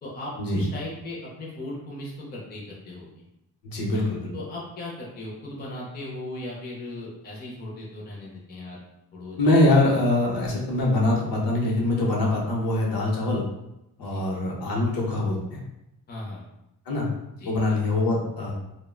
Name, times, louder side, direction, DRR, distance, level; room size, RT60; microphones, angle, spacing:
voice 1, 0.0-3.2 3.9-8.8 9.1-9.4 9.7-9.9 14.0-14.2 16.1-16.4 17.4-17.5, left 1 dB, 25° left, -4 dB, 0.5 m, -38 dB
voice 2, 3.6-4.3 9.4-13.4 14.0-15.6 16.9-17.0 17.5-18.5, left 2 dB, 65° left, -2 dB, 0.8 m, -23 dB
3.5 x 2.1 x 2.2 m, 0.87 s
wide cardioid pair, 180°, 39 cm